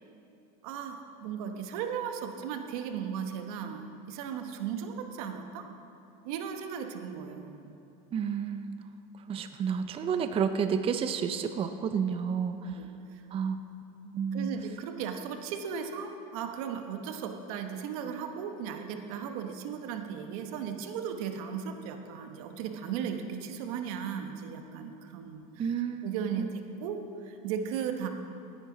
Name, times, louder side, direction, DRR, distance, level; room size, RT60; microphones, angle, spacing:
voice 1, 0.6-5.7 6.2-7.7 12.6-13.2 14.3-28.1, right 7 dB, 80° right, 6 dB, 1.0 m, -36 dB
voice 2, 8.1-8.8 9.3-12.7 13.3-13.6 14.0-14.5 25.6-26.5, right 7 dB, 30° right, 9 dB, 0.5 m, -31 dB
15.5 x 10.0 x 3.9 m, 2.8 s
supercardioid pair, 105°, 18 cm